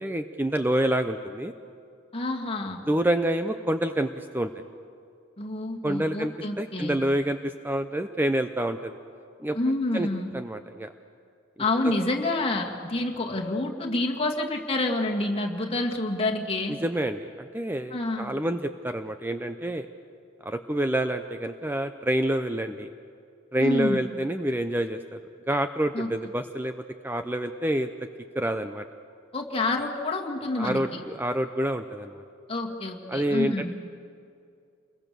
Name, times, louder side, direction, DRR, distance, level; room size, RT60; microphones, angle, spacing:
voice 1, 0.0-1.5 2.9-4.5 5.8-9.0 9.4-9.6 9.9-10.1 10.3-10.9 11.8-11.9 16.8-19.9 20.4-22.9 23.5-25.2 25.5-27.9 28.3-28.9 30.6-32.2 33.1-33.7, right 1 dB, 10° right, 8 dB, 0.6 m, -27 dB
voice 2, 2.1-2.8 5.4-7.0 9.5-10.3 11.6-16.8 17.9-18.4 23.6-24.0 25.9-26.1 29.3-31.0 32.5-33.7, left 2 dB, 30° left, 0 dB, 2.2 m, -28 dB
28.5 x 22.0 x 6.8 m, 2.4 s
head